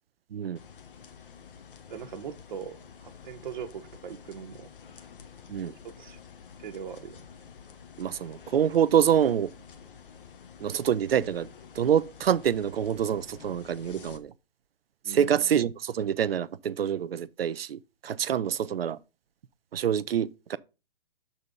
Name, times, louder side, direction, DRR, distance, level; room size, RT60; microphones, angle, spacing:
sound 1, 0.6-14.2, left 7 dB, 60° left, 1.2 m, -49 dB
voice 1, 1.9-4.7 5.8-6.2 6.6-7.2 15.0-15.5, right 7 dB, 50° right, 1.0 m, -40 dB
voice 2, 8.0-9.5 10.6-11.5 11.8-14.3 15.1-19.0 19.7-20.6, right 9 dB, 75° right, 0.5 m, -26 dB
6.9 x 4.2 x 5.2 m
figure-of-eight pair, 130°, 30 cm